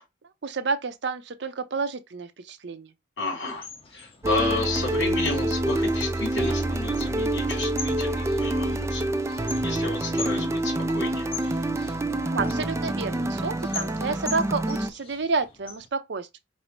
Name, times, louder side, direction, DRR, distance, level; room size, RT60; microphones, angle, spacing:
voice 1, 0.4-2.9 12.2-16.4, right 4 dB, 60° right, 0.6 m, -30 dB
voice 2, 3.2-9.1 9.6-11.3, left 3 dB, 60° left, 3.2 m, -31 dB
sound 1, 3.5-15.9, left 4 dB, 30° left, 0.8 m, -43 dB
sound 2, 4.2-14.9, right 1 dB, 15° right, 0.3 m, -27 dB
5.4 x 2.0 x 4.3 m
head